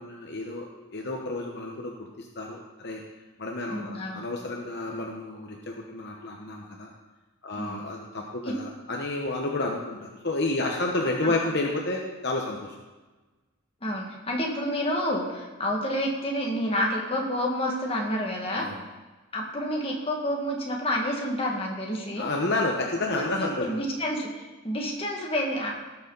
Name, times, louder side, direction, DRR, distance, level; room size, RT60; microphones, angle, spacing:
voice 1, 0.0-3.0 3.4-6.9 7.4-12.7 18.5-18.8 22.2-23.7, left 2 dB, 50° left, 0 dB, 1.0 m, -30 dB
voice 2, 3.7-4.3 7.6-7.8 8.5-8.6 11.2-11.3 13.8-18.7 19.3-22.3 23.1-25.7, equal, 25° left, -1 dB, 1.8 m, -29 dB
18.0 x 6.9 x 4.0 m, 1.2 s
head